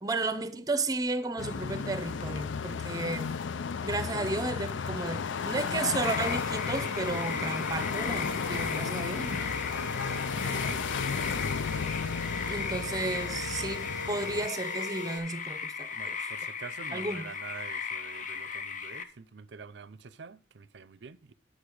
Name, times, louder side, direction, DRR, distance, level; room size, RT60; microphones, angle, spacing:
voice 1, 0.0-3.3 3.8-9.5 12.5-16.2 16.9-17.3, right 3 dB, 20° right, 0.7 m, -33 dB
sound 1, 1.4-14.5, left 6 dB, 75° left, 0.4 m, -34 dB
sound 2, 6.0-19.0, left 6 dB, 40° left, 0.8 m, -37 dB
sound 3, 6.2-15.2, equal, 20° left, 1.4 m, -42 dB
voice 2, 10.1-11.0 15.9-21.3, right 5 dB, 65° right, 0.5 m, -46 dB
10.0 x 6.5 x 4.8 m
head